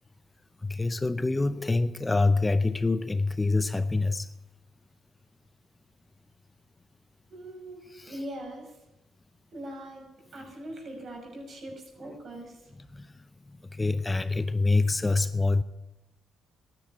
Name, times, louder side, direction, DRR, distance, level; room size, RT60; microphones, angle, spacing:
voice 1, 0.6-4.3 7.9-8.2 12.1-12.2 12.9-13.1 13.5-15.6, left 3 dB, 20° left, 0.6 m, -26 dB
voice 2, 7.3-7.8 8.0-8.7 9.5-10.0 10.3-12.6, right 1 dB, 50° right, 6.2 m, -41 dB
13.0 x 11.0 x 9.5 m
cardioid pair, 90°, 0 cm